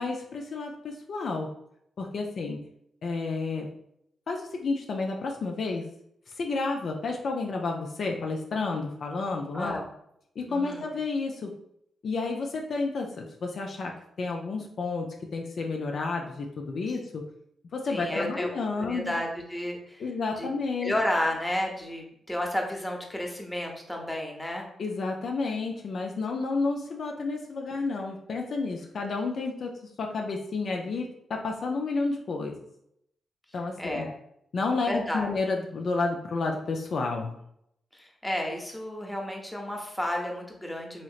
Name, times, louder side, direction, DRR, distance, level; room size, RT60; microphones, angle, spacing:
voice 1, 0.0-1.5 2.0-2.6 3.0-3.7 4.3-5.8 6.4-9.8 10.4-11.5 12.0-17.3 17.7-19.1 20.0-20.9 24.8-29.7 30.0-32.5 33.5-34.1 34.5-37.4, left 3 dB, 65° left, 2 dB, 0.4 m, -31 dB
voice 2, 9.5-9.9 10.5-10.9 17.9-18.5 18.8-20.1 20.4-20.5 20.8-24.7 33.8-34.1 34.9-35.3 37.9-41.0, left 1 dB, 10° left, 1 dB, 0.8 m, -32 dB
3.0 x 2.8 x 2.4 m, 0.73 s
supercardioid pair, 45°, 0 cm